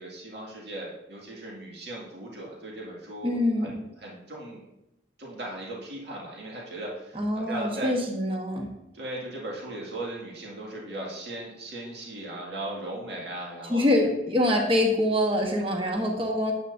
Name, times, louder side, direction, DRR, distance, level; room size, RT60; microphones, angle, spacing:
voice 1, 0.0-4.6 5.2-7.9 8.9-14.1, right 1 dB, 65° right, -3 dB, 2.2 m, -38 dB
voice 2, 3.2-3.8 7.1-8.7 13.7-16.5, left 1 dB, 30° right, 2 dB, 1.2 m, -25 dB
10.0 x 9.1 x 2.7 m, 0.90 s
head